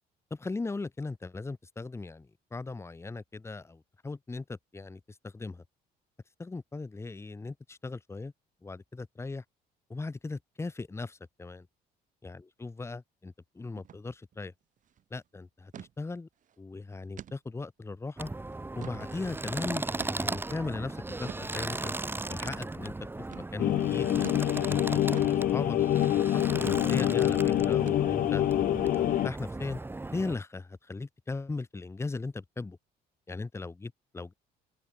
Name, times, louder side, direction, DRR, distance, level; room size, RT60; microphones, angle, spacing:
voice 1, 0.3-5.6 6.4-8.3 8.6-9.4 9.9-11.7 12.2-14.5 15.1-16.3 16.6-18.3 18.7-21.9 22.3-22.9 23.3-25.8 26.3-28.4 28.8-29.8 30.1-32.8 33.3-34.3, left 3 dB, 15° left, 1.3 m, -38 dB
sound 1, 13.8-14.0 14.3-14.4 14.8-15.0 15.7-15.9 16.4-16.5 17.2-17.4 17.9-18.0 18.5-19.1 20.0-20.4 21.2-21.5 22.4-22.6 23.3-23.5 24.2-24.5 25.1-25.4 26.0-26.2 26.6-26.9 27.2-27.4 27.9-28.3, right 9 dB, 50° right, 1.9 m, -45 dB
sound 2, 18.2-30.4, right 2 dB, 10° right, 2.2 m, -37 dB
sound 3, 23.6-29.3, left 12 dB, 55° left, 0.7 m, -26 dB
open air
cardioid pair, 110°, 17 cm